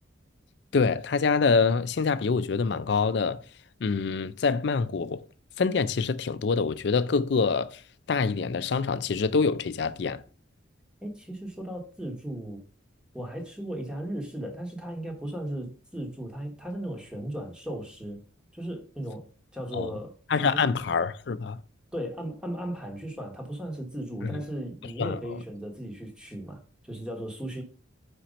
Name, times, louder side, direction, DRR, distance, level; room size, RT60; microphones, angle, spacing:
voice 1, 0.7-3.4 3.8-5.2 5.6-7.8 8.1-10.2 19.7-19.9 20.3-21.6 24.2-24.4 25.0-25.2, left 5 dB, 60° left, 0.4 m, -25 dB
voice 2, 11.0-12.6 13.1-18.2 18.5-19.3 19.5-20.6 21.9-27.6, right 1 dB, 5° right, 1.2 m, -36 dB
5.1 x 4.4 x 5.1 m
head